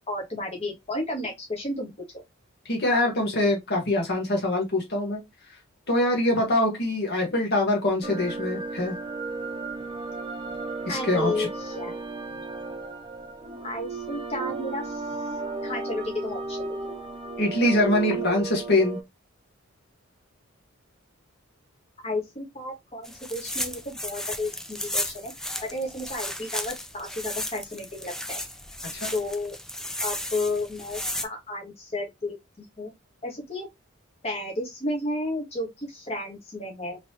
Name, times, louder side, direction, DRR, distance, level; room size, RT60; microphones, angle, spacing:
voice 1, 0.1-2.2 10.9-12.0 13.6-15.0 15.6-16.8 22.0-25.3 25.6-28.4 29.1-29.5 30.0-32.9 33.2-33.7 34.2-37.0, left 2 dB, 30° left, 1.5 m, -32 dB
voice 2, 2.7-5.2 5.9-9.0 10.9-11.5 17.4-19.0 28.9-29.1, left 1 dB, 50° left, 1.4 m, -24 dB
sound 1, 8.0-19.0, right 3 dB, 25° right, 0.8 m, -34 dB
sound 2, 23.0-31.2, left 1 dB, 5° left, 0.4 m, -34 dB
3.9 x 3.1 x 2.9 m
head